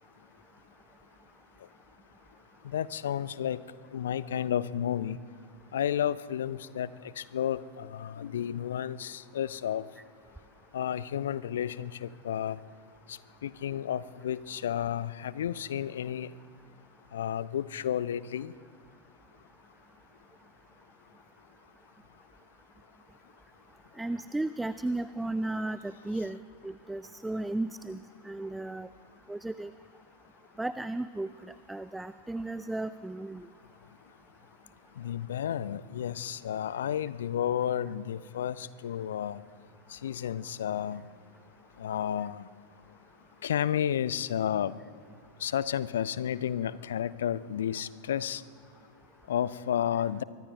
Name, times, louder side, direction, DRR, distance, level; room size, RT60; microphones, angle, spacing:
voice 1, 2.6-3.6 3.9-5.2 5.7-6.9 7.2-9.8 10.7-12.6 13.1-16.3 17.1-18.5 35.0-39.4 39.9-41.0 41.8-42.5 43.4-44.7 45.4-48.4 49.3-50.2, left 10 dB, 60° left, 18 dB, 0.4 m, -32 dB
voice 2, 24.0-26.4 26.6-28.0 28.2-28.9 29.3-29.7 30.6-33.5, right 2 dB, 5° right, 14 dB, 0.3 m, -34 dB
24.0 x 23.5 x 2.3 m, 2.2 s
figure-of-eight pair, 90°, 0 cm